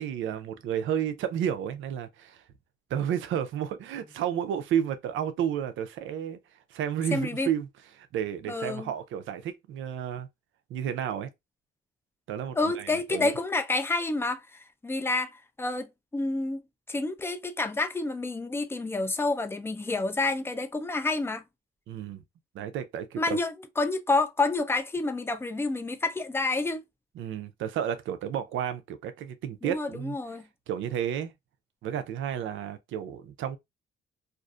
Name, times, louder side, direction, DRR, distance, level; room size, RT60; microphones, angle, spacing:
voice 1, 0.0-2.4 2.9-6.4 6.7-7.7 8.0-10.3 10.7-11.3 12.3-13.3 21.9-22.2 22.5-23.4 27.2-30.2 30.7-31.3 31.8-33.6, right 9 dB, 75° right, 0.5 m, -31 dB
voice 2, 7.1-7.5 8.5-8.9 12.5-15.9 16.1-16.6 16.9-21.4 23.2-26.8 29.6-30.4, left 3 dB, 10° left, 0.4 m, -29 dB
2.5 x 2.4 x 2.3 m
cardioid pair, 90°, 20 cm